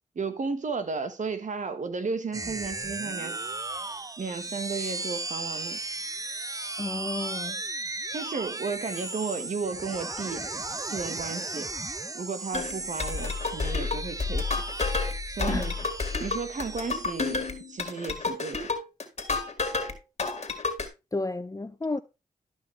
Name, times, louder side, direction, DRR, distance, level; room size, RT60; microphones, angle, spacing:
voice 1, 0.1-3.4 4.2-5.8 8.1-10.5 10.9-11.7 12.1-14.6 15.3-15.7 16.2-18.7, right 4 dB, 60° right, 1.5 m, -33 dB
sound 1, 2.3-18.1, right 2 dB, 25° right, 0.7 m, -36 dB
voice 2, 6.8-7.6 15.5-15.7 21.1-22.0, left 2 dB, 25° left, 0.6 m, -31 dB
sound 2, 12.5-19.9 20.2-20.9, left 4 dB, 45° left, 2.0 m, -30 dB
12.0 x 5.6 x 3.3 m
supercardioid pair, 45°, 15 cm